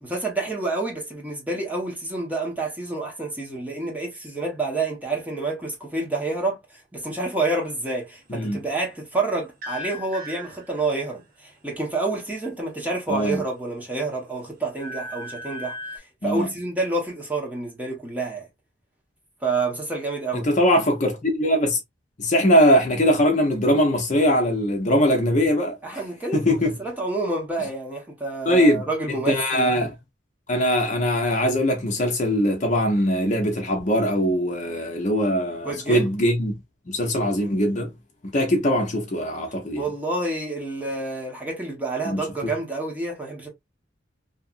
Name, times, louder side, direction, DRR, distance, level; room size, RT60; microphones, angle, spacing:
voice 1, 0.0-6.6 6.9-15.8 16.2-18.5 19.4-20.5 25.8-29.9 35.6-36.1 39.7-43.5, right 2 dB, 10° right, 1.0 m, -28 dB
voice 2, 8.3-8.6 13.1-13.4 16.2-16.5 20.3-21.8 22.2-26.0 26.3-26.7 28.5-29.9 30.5-36.5 36.9-37.9 38.2-39.9 42.0-42.3, equal, 40° left, 0.7 m, -21 dB
sound 1, 9.6-11.1 13.1-13.8 14.2-16.0, equal, 50° right, 0.9 m, -38 dB
2.8 x 2.4 x 2.4 m
head